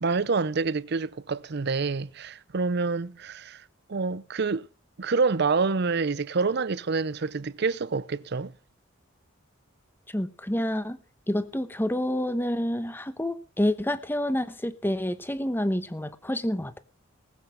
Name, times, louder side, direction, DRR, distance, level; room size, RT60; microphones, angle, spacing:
voice 1, 0.0-3.6 3.9-4.7 5.0-8.5, right 4 dB, 60° right, 0.6 m, -27 dB
voice 2, 10.1-11.0 11.3-16.8, left 1 dB, 10° left, 1.0 m, -28 dB
19.5 x 8.2 x 5.3 m
head